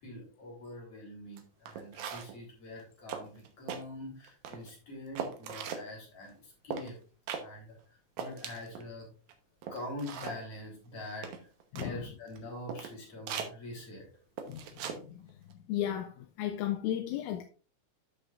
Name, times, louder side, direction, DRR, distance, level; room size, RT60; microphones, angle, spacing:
voice 1, 0.0-7.0 7.4-9.1 9.7-11.5 11.7-14.1, left 1 dB, 45° left, 4.5 m, -44 dB
sound 1, 1.4-1.5 1.7-2.4 2.8-2.9 3.1-3.8 4.2-4.7 5.2-5.9 6.7-6.9 7.3-7.5 7.8-7.9 8.2-8.9 9.3-9.4 9.6-10.4 11.2-11.9 12.4-12.5 12.7-12.9 13.3-13.5 14.4-15.0 15.3-15.5, right 7 dB, 70° right, 2.3 m, -39 dB
voice 2, 15.7-17.4, left 11 dB, 80° left, 1.9 m, -34 dB
12.5 x 5.8 x 2.5 m
omnidirectional pair, 3.6 m